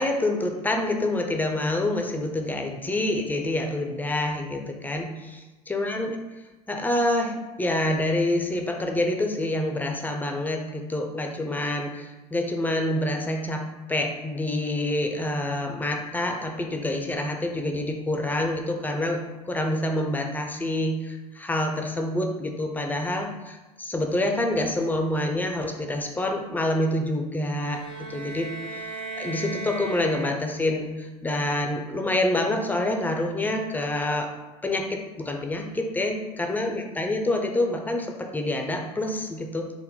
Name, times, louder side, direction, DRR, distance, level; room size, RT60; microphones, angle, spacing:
voice 1, 0.0-6.2 6.7-28.8 29.2-34.3 34.6-39.7, left 1 dB, 10° left, 3 dB, 0.5 m, -27 dB
sound 1, 27.5-30.8, right 3 dB, 60° right, 1.1 m, -37 dB
4.0 x 2.1 x 3.6 m, 1.1 s
hypercardioid pair, 85°, 20 cm